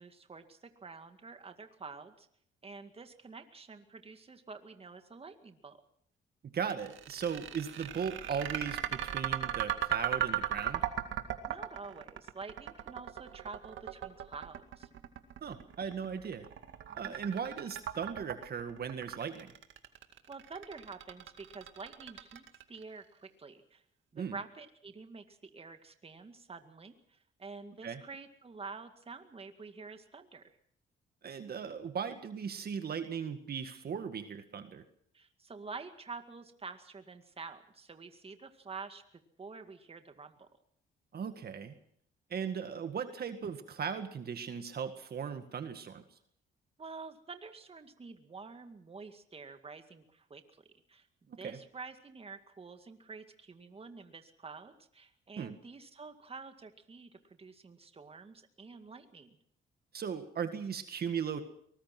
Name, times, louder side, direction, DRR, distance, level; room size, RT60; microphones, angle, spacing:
voice 1, 0.0-2.3 2.6-5.8 11.5-14.9 16.9-17.1 20.3-23.8 24.1-30.6 35.1-40.5 46.8-59.4, right 4 dB, 30° right, 7 dB, 2.1 m, -48 dB
voice 2, 6.4-10.8 15.4-16.5 17.0-19.5 24.2-24.4 27.8-28.0 31.2-34.8 41.1-41.8 42.3-46.0 51.3-51.6 55.4-55.6 59.9-61.4, right 7 dB, 50° right, 8 dB, 1.9 m, -37 dB
sound 1, 6.7-22.8, right 11 dB, 75° right, 2.2 m, -37 dB
23.5 x 20.0 x 6.1 m, 0.67 s
cardioid pair, 90°, 20 cm